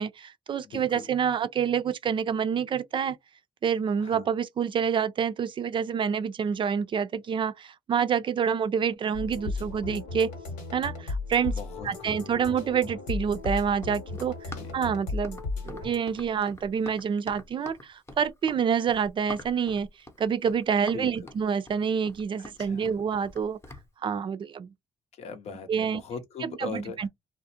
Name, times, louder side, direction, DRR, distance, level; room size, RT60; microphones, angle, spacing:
voice 1, 0.0-3.2 3.6-10.3 10.7-11.5 11.9-15.4 15.6-19.9 20.2-23.6 24.0-24.7 25.7-26.0 26.4-27.1, right 7 dB, 40° right, 0.4 m, -27 dB
voice 2, 0.6-1.1 4.0-4.3 11.5-12.3 14.5-14.8 20.9-21.1 22.4-23.0 25.1-27.1, left 5 dB, 60° left, 0.7 m, -41 dB
sound 1, 9.1-16.0, left 3 dB, 80° left, 1.0 m, -35 dB
Run, 13.3-23.9, left 1 dB, 20° left, 0.7 m, -46 dB
2.4 x 2.0 x 2.7 m
supercardioid pair, 65°, 12 cm